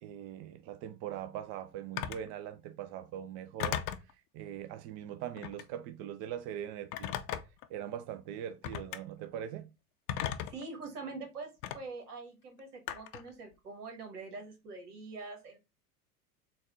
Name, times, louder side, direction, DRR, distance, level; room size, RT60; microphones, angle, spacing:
voice 1, 0.0-3.8 4.3-7.2 7.7-9.7, right 10 dB, 40° right, 0.4 m, -41 dB
Telephone, 2.0-2.3 3.6-4.1 5.4-5.7 6.9-7.7 8.6-9.0 10.1-10.6 11.6-11.8 12.9-13.3, left 10 dB, 50° left, 0.6 m, -36 dB
voice 2, 10.5-15.6, right 3 dB, 80° right, 1.5 m, -44 dB
4.0 x 2.3 x 3.6 m
hypercardioid pair, 95°, 45 cm